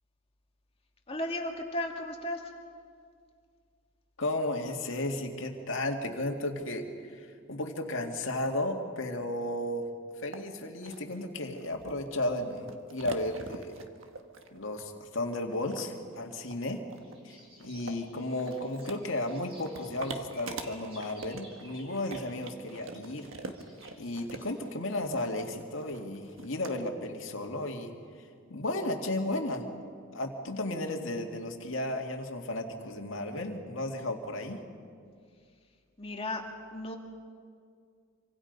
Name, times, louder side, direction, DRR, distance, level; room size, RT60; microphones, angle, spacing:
voice 1, 1.1-2.4 36.0-36.4 36.7-37.0, left 1 dB, 30° left, 1 dB, 2.3 m, -34 dB
voice 2, 4.2-9.9 10.2-13.7 14.5-16.8 17.2-23.3 24.0-27.9 28.5-29.6 30.1-34.6, left 1 dB, 65° left, 2 dB, 2.2 m, -34 dB
sound 1, 10.3-10.4 10.8-26.7, right 3 dB, 75° right, 1.5 m, -45 dB
sound 2, 16.9-24.5, equal, 30° right, 5.1 m, -56 dB
26.5 x 25.0 x 5.4 m, 2.2 s
head